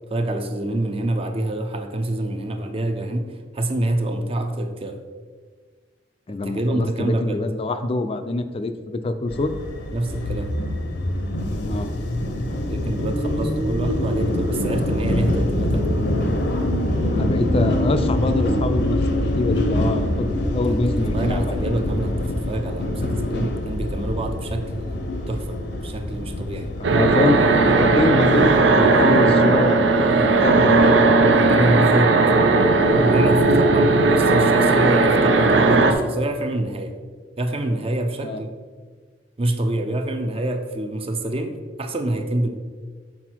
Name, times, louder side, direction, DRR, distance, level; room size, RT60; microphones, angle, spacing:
voice 1, 0.1-5.0 6.4-7.4 8.7-8.8 9.9-10.5 12.7-15.9 20.7-20.8 21.1-25.0 25.3-26.7 31.2-32.2 33.0-36.9 37.4-38.5 39.4-42.5, right 1 dB, 35° right, 5 dB, 0.5 m, -26 dB
voice 2, 6.3-9.6 11.7-11.9 17.1-21.8 26.9-29.8 30.2-30.8 38.2-38.4, left 2 dB, 35° left, 10 dB, 0.4 m, -25 dB
sound 1, 9.3-28.6, left 1 dB, 65° left, 0.7 m, -25 dB
sound 2, 26.8-35.9, right 3 dB, 90° right, 0.5 m, -16 dB
5.9 x 4.3 x 4.5 m, 1.5 s
head